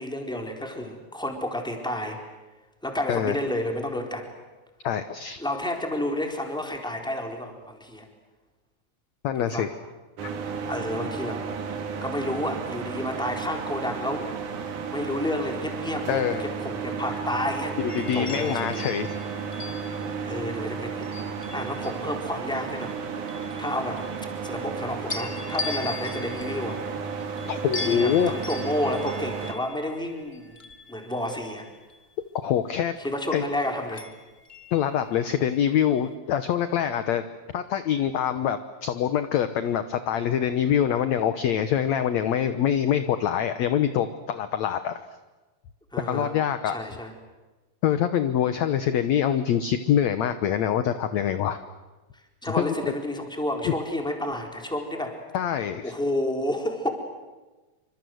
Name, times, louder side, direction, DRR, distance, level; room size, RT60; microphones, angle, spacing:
voice 1, 0.0-2.2 2.8-4.3 5.4-8.1 9.4-9.7 10.6-11.4 12.0-14.3 14.6-17.8 18.1-18.8 20.2-21.1 21.5-23.0 23.2-24.0 24.4-26.8 27.8-30.6 30.9-31.7 33.0-34.1 45.9-46.3 46.7-47.1 52.4-55.2 55.8-56.9, left 1 dB, ahead, 2 dB, 3.7 m, -30 dB
voice 2, 4.8-5.4 9.2-9.7 16.1-16.4 17.8-19.1 27.5-28.3 32.4-32.9 33.3-33.4 34.7-37.2 37.5-45.0 46.1-46.8 47.8-51.6 52.4-52.7 53.7-53.8 55.3-55.9, left 9 dB, 70° left, 10 dB, 1.8 m, -25 dB
sound 1, 10.2-29.5, right 6 dB, 60° right, 3.4 m, -33 dB
sound 2, 17.9-22.2 22.8-24.7 25.1-32.0 34.0-35.4 35.8-36.1, left 3 dB, 25° left, 1.4 m, -40 dB
28.0 x 26.0 x 7.9 m, 1.2 s
omnidirectional pair, 4.3 m